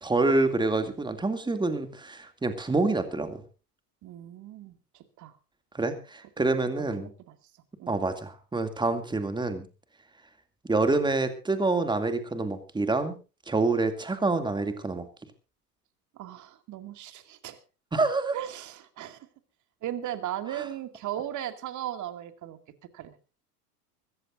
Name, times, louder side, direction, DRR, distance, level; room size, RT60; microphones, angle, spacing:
voice 1, 0.0-3.4 5.7-7.1 7.9-9.6 10.7-13.2 13.5-15.1 17.9-18.4, right 3 dB, 10° right, 8 dB, 2.4 m, -27 dB
voice 2, 4.0-5.3 6.8-7.4 7.8-8.0 16.1-17.6 18.3-19.3 19.8-22.6 22.9-23.2, right 12 dB, 40° right, 9 dB, 2.3 m, -37 dB
25.0 x 14.5 x 2.6 m, 0.32 s
hypercardioid pair, 110°, 47 cm